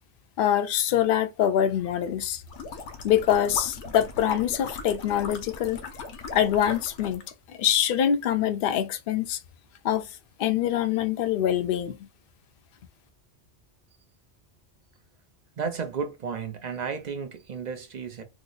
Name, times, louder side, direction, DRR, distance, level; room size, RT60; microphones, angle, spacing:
voice 1, 0.4-2.4 3.0-5.8 6.3-7.2 7.5-9.4 9.8-10.1 10.4-12.0, left 10 dB, 60° left, 0.6 m, -24 dB
sound 1, 2.5-7.3, left 4 dB, 80° left, 1.0 m, -39 dB
voice 2, 15.6-18.2, right 5 dB, 50° right, 0.6 m, -33 dB
3.0 x 2.0 x 3.8 m
omnidirectional pair, 1.2 m